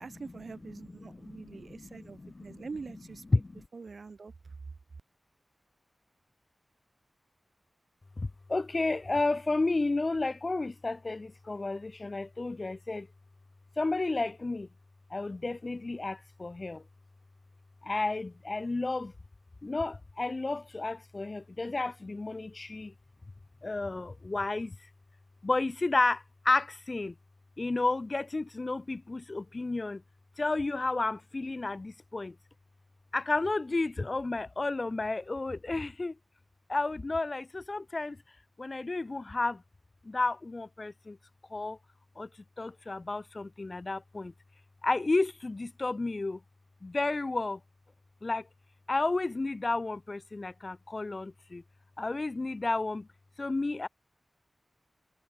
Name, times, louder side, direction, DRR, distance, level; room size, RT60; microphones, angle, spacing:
voice 1, 0.0-3.2 3.7-4.3, right 4 dB, 70° right, 2.0 m, -44 dB
voice 2, 0.7-2.7 3.3-3.6 8.2-13.1 13.8-14.7 15.1-16.8 17.8-19.1 19.6-22.9 23.6-24.7 25.4-27.1 27.6-30.0 30.4-32.3 33.1-36.1 36.7-38.2 38.6-39.6 40.0-41.2 41.5-41.8 42.2-42.3 42.6-44.3 44.8-46.4 46.8-47.6 48.2-48.5 48.9-51.6 52.0-53.1 53.4-53.9, left 3 dB, 40° left, 1.5 m, -32 dB
wide cardioid pair, 90°, 0 cm